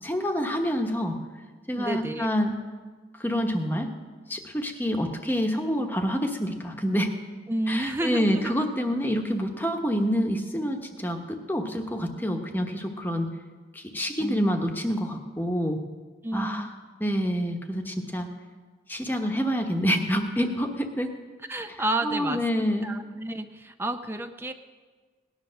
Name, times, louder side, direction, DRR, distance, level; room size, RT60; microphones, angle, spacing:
voice 1, 0.0-1.2 1.7-2.6 3.2-3.9 4.3-7.1 7.7-13.3 13.7-15.8 16.3-16.7 17.0-18.3 18.9-21.1 22.0-22.9, equal, 10° left, 4 dB, 1.1 m, -27 dB
voice 2, 1.8-2.3 7.5-8.5 14.2-14.6 16.2-16.7 21.5-22.5 22.8-24.5, right 1 dB, 10° right, 8 dB, 0.5 m, -30 dB
18.0 x 10.0 x 6.4 m, 1.4 s
head